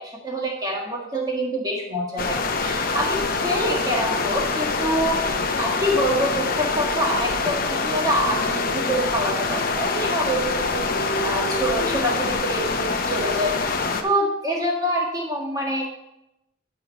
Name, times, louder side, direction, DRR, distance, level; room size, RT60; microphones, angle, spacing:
voice 1, 0.0-13.8 14.0-15.9, equal, 20° right, -2 dB, 1.7 m, -26 dB
sound 1, 2.2-14.0, left 4 dB, 50° left, 0.7 m, -25 dB
9.6 x 5.2 x 4.3 m, 0.87 s
head